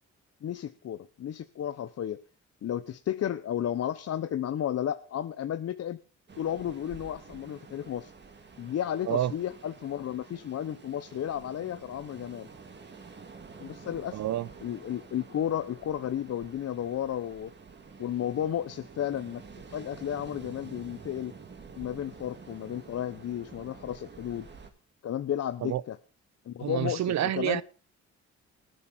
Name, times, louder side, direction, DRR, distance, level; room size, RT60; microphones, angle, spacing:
voice 1, 0.4-2.2 2.6-6.0 6.4-8.1 8.6-12.5 13.6-14.2 14.6-17.5 18.0-19.4 19.7-21.3 21.8-24.5 25.0-26.0 26.5-27.6, left 10 dB, 55° left, 0.9 m, -33 dB
Ocean, 6.3-24.7, right 5 dB, 35° right, 2.7 m, -49 dB
voice 2, 14.1-14.5 25.6-25.8 26.6-27.6, right 12 dB, 65° right, 0.8 m, -28 dB
19.5 x 9.8 x 4.4 m
cardioid pair, 90°, 30 cm